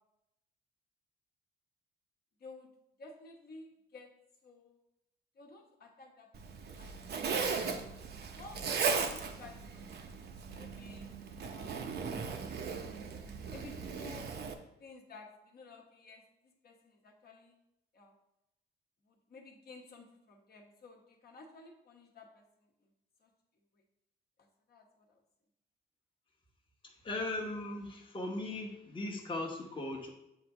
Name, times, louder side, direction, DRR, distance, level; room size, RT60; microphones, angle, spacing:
voice 1, 3.0-4.1 4.4-4.8 5.4-6.3 6.8-6.9 7.4-7.8 8.3-9.8 10.5-11.1 11.5-11.9 13.5-14.3 14.8-17.6 17.9-18.2 19.1-22.4 23.2-23.3 24.7-25.2, left 3 dB, 50° left, 1 dB, 1.2 m, -54 dB
Zipper (clothing), 6.3-14.5, right 5 dB, 55° right, 0.7 m, -37 dB
voice 2, 26.8-30.1, left 2 dB, 25° left, -2 dB, 1.1 m, -38 dB
7.6 x 2.6 x 4.8 m, 0.87 s
cardioid pair, 90°, 20 cm